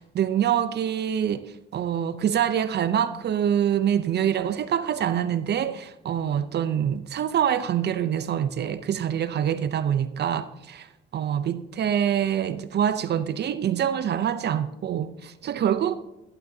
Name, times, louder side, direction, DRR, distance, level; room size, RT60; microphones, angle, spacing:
voice 1, 0.0-15.9, right 9 dB, 60° right, 0.6 m, -25 dB
16.0 x 11.0 x 2.8 m
cardioid pair, 90°, 20 cm